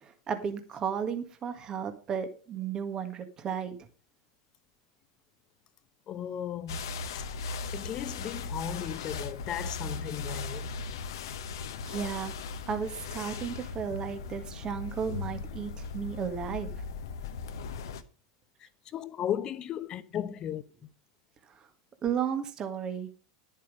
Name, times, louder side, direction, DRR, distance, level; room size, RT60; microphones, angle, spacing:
voice 1, 0.0-3.8 11.8-12.3 12.7-16.7 22.0-23.1, right 7 dB, 30° right, 1.7 m, -34 dB
voice 2, 6.1-6.8 7.1-10.7 18.6-20.6, left 10 dB, 35° left, 1.0 m, -36 dB
sound 1, 6.7-18.0, left 4 dB, 70° left, 1.0 m, -38 dB
11.0 x 7.4 x 5.1 m
hypercardioid pair, 100°, 2 cm